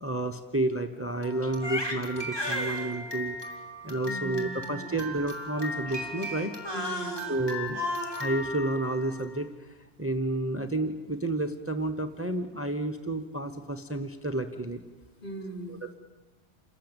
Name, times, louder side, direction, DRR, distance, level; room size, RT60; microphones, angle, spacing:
voice 1, 0.0-3.4 3.8-6.5 7.3-7.8 8.2-14.8 15.7-15.9, right 2 dB, 15° right, 7 dB, 0.9 m, -31 dB
Crying sobbing, 1.2-9.4, left 1 dB, 20° left, 2.9 m, -35 dB
voice 2, 4.0-4.9 6.7-7.3 15.2-15.8, right 1 dB, 55° left, 0 dB, 3.8 m, -39 dB
28.0 x 14.5 x 8.8 m, 1.2 s
omnidirectional pair, 1.1 m